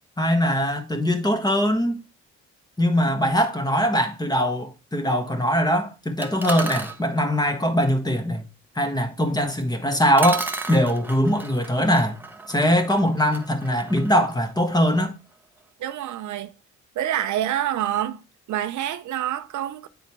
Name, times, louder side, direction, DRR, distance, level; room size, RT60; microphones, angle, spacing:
voice 1, 0.2-2.0 2.8-8.5 8.7-12.2 12.5-15.1, equal, 15° left, 1.5 m, -22 dB
sound 1, 6.2-7.0 9.6-9.7 10.2-15.0, right 3 dB, 5° right, 1.0 m, -34 dB
voice 2, 15.8-16.5 17.0-18.2 18.5-19.9, right 11 dB, 70° right, 0.7 m, -27 dB
8.8 x 3.9 x 4.6 m
cardioid pair, 90°, 30 cm